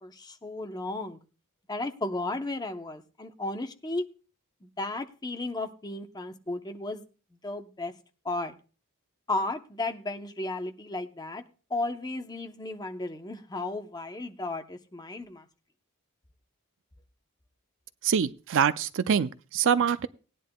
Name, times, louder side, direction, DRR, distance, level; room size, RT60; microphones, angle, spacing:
voice 1, 0.0-1.2 1.7-4.1 4.6-7.0 7.4-7.9 8.2-8.5 9.3-11.4 11.7-15.5, left 2 dB, 20° left, 7 dB, 0.7 m, -34 dB
voice 2, 18.0-20.1, right 7 dB, 60° right, 13 dB, 0.4 m, -25 dB
18.5 x 10.0 x 2.2 m, 0.35 s
head